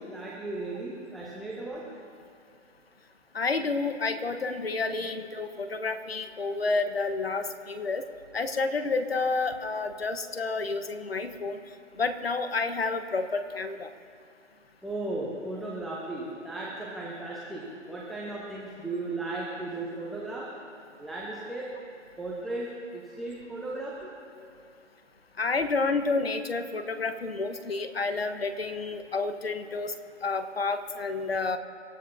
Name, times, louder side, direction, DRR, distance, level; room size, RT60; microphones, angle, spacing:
voice 1, 0.0-1.9 14.8-20.6 21.0-21.7 22.2-24.1, right 2 dB, ahead, -5 dB, 0.5 m, -36 dB
voice 2, 3.3-8.0 8.3-11.6 12.0-13.9 25.4-29.9 30.2-31.6, left 3 dB, 55° left, 8 dB, 1.2 m, -30 dB
27.5 x 14.0 x 2.8 m, 2.3 s
hypercardioid pair, 180°, 36 cm